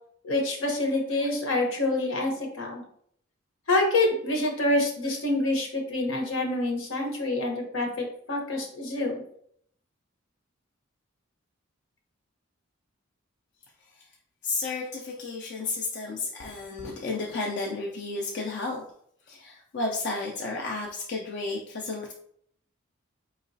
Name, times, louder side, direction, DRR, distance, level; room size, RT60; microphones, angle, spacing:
voice 1, 0.2-2.8 3.7-9.1, left 2 dB, 80° left, 1 dB, 1.0 m, -27 dB
voice 2, 14.4-18.8 19.3-22.1, left 3 dB, 60° left, -1 dB, 0.5 m, -32 dB
4.7 x 2.9 x 2.7 m, 0.66 s
head